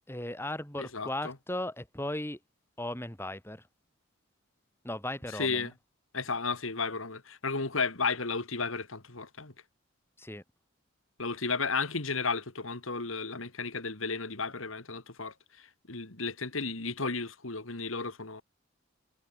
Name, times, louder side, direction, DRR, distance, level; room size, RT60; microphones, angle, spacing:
voice 1, 0.1-2.4 2.8-3.7 4.8-5.7 10.2-10.4, left 1 dB, 10° left, 6.0 m, -36 dB
voice 2, 0.8-1.3 5.3-5.7 6.1-9.5 11.2-18.4, left 4 dB, 85° left, 2.7 m, -33 dB
head